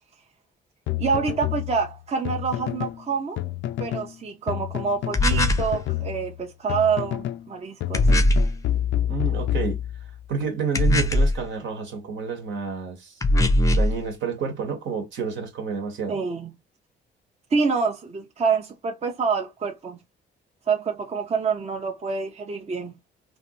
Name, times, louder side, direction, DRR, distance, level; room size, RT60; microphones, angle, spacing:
sound 1, 0.9-3.0 3.4-4.1 4.5-7.5 7.8-10.2, left 12 dB, 70° left, 0.4 m, -29 dB
voice 1, 1.0-3.4 3.8-8.1 16.1-16.5 17.5-20.0 20.7-22.9, right 5 dB, 30° right, 0.6 m, -26 dB
sound 2, 5.1-5.7 7.9-8.5 10.7-11.4 13.2-13.9, left 1 dB, 15° left, 0.6 m, -19 dB
voice 2, 9.1-9.8 10.3-13.2 13.7-16.2, right 5 dB, 70° right, 1.2 m, -29 dB
3.1 x 2.6 x 2.9 m
cardioid pair, 90°, 20 cm